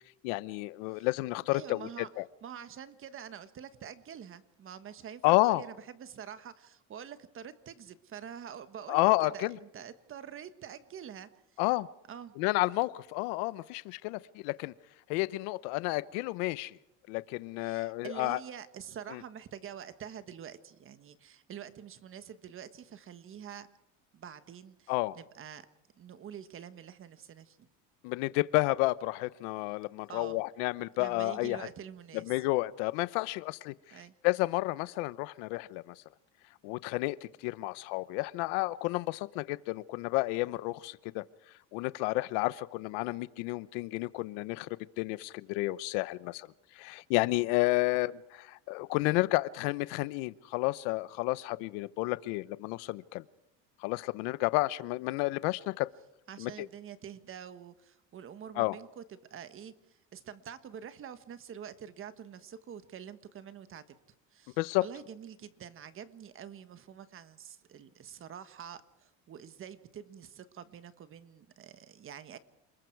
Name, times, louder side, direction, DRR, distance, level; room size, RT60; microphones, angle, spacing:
voice 1, 0.2-1.9 2.2-2.3 5.2-5.6 8.9-9.6 11.6-11.9 12.4-14.7 15.1-16.8 17.1-18.4 19.1-19.2 24.9-25.2 28.0-31.7 32.2-33.7 34.2-35.9 36.6-41.2 41.7-44.7 45.0-46.5 46.7-53.2 53.8-55.9 56.4-56.5 58.6-58.8 64.6-64.8, left 21 dB, 80° left, 18 dB, 0.9 m, -31 dB
voice 2, 1.5-2.1 2.4-11.6 12.1-12.3 17.6-23.7 24.1-25.7 26.0-27.7 30.1-30.4 31.0-32.5 33.9-34.1 56.3-63.8 64.3-72.4, right 8 dB, 35° right, 12 dB, 1.5 m, -46 dB
28.5 x 21.0 x 4.7 m, 0.87 s
cardioid pair, 140°, 37 cm